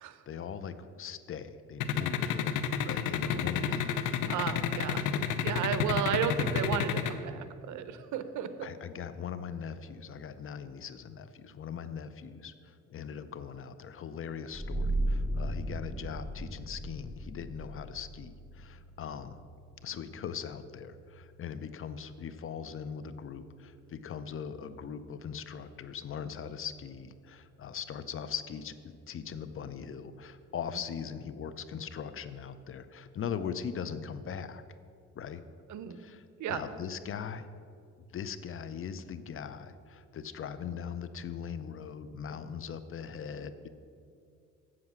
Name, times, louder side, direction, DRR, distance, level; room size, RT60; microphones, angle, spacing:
voice 1, 0.3-2.6 2.9-3.9 5.4-6.0 8.6-19.4 19.8-34.6 35.2-35.4 35.9-37.4 38.1-43.7, left 7 dB, 45° left, 12 dB, 0.6 m, -40 dB
sound 1, 1.8-7.1, left 9 dB, 85° left, 0.6 m, -29 dB
voice 2, 4.3-5.0 5.4-8.7 35.7-36.0 36.4-36.6, right 8 dB, 75° right, 11 dB, 0.7 m, -33 dB
sound 2, 14.5-25.8, right 1 dB, 10° left, 2.6 m, -38 dB
7.6 x 7.5 x 5.9 m, 2.3 s
cardioid pair, 90°, 30 cm